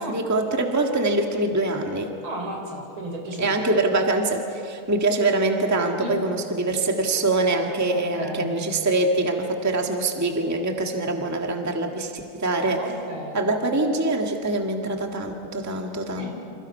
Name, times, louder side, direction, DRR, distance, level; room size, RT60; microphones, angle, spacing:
voice 1, 0.0-2.1 3.4-12.8 13.3-16.3, right 2 dB, 10° right, 2 dB, 1.4 m, -24 dB
voice 2, 2.2-3.6 6.0-6.1 7.9-8.5 12.6-13.4 16.2-16.3, right 1 dB, 70° right, 1 dB, 5.1 m, -34 dB
29.0 x 27.5 x 5.5 m, 2.5 s
omnidirectional pair, 2.4 m